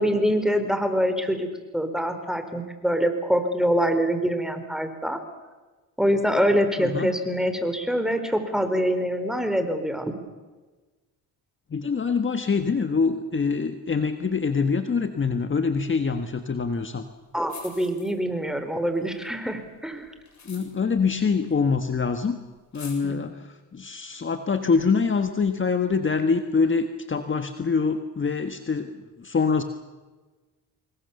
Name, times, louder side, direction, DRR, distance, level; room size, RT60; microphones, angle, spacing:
voice 1, 0.0-1.5 1.7-5.2 6.0-10.1 17.3-20.1 23.0-23.2, equal, ahead, 7 dB, 4.2 m, -24 dB
voice 2, 6.8-7.1 11.7-17.1 20.4-22.4 22.7-23.5 23.7-28.9 29.2-29.6, left 5 dB, 35° left, 8 dB, 1.6 m, -24 dB
sound 1, 17.1-17.2 17.4-18.5 18.9-21.9 22.2-22.3 22.6-23.0, left 6 dB, 50° left, 7.5 m, -47 dB
26.5 x 21.5 x 7.1 m, 1.3 s
cardioid pair, 85°, 36 cm